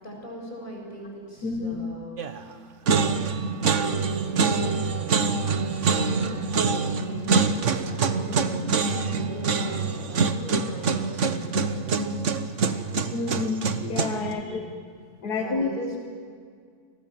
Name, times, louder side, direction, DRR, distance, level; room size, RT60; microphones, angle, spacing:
voice 1, 0.0-2.8 3.4-5.4 5.8-12.2 14.2-14.8 15.3-16.0, equal, 30° left, 0 dB, 7.5 m, -41 dB
voice 2, 1.4-1.8 13.1-14.7 15.2-15.7, left 4 dB, 80° left, 4 dB, 2.1 m, -29 dB
sound 1, 2.2-2.5 2.9-14.3, right 4 dB, 50° right, 1.4 m, -25 dB
30.0 x 23.5 x 7.7 m, 2.1 s
omnidirectional pair, 1.7 m